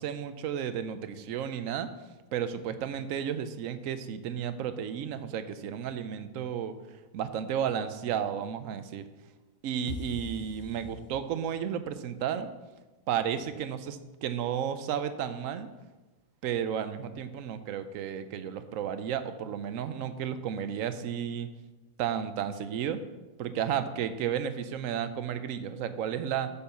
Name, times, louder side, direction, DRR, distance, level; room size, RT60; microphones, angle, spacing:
voice 1, 0.0-1.9 2.3-6.7 7.1-9.0 9.6-12.5 13.1-15.7 16.4-21.5 22.0-23.0 23.4-26.5, right 8 dB, 70° right, 11 dB, 1.0 m, -33 dB
sound 1, 9.9-11.7, left 4 dB, 50° left, 1.1 m, -42 dB
8.6 x 5.5 x 6.8 m, 1.2 s
omnidirectional pair, 1.5 m